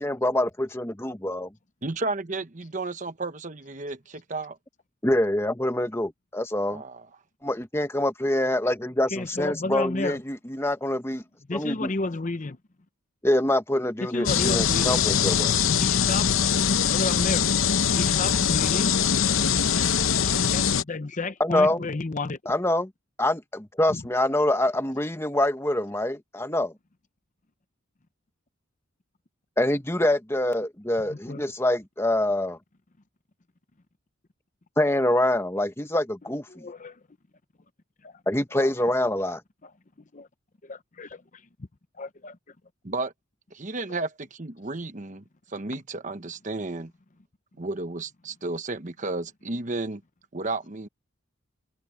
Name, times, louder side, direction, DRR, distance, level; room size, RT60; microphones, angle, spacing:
voice 1, 0.0-1.5 5.0-6.8 7.4-11.2 11.5-11.9 13.2-15.7 21.4-21.8 22.5-22.9 23.2-26.7 29.6-32.6 34.8-36.6 38.3-39.4, left 1 dB, 10° left, 1.2 m, -25 dB
voice 2, 1.8-4.6 6.7-7.0 42.8-43.1 43.5-45.2 45.5-46.9 47.6-50.0 50.3-50.9, right 3 dB, 40° right, 1.1 m, -32 dB
voice 3, 9.1-10.2 11.5-12.6 14.0-15.0 15.8-17.5 17.9-19.0 20.5-22.4 23.9-24.0 31.1-31.4 36.5-37.0 38.0-38.1 38.6-38.9 40.1-40.3 40.6-41.2 42.0-42.4, left 2 dB, 35° left, 0.7 m, -32 dB
sound 1, 14.3-20.8, left 7 dB, 80° left, 0.8 m, -22 dB
head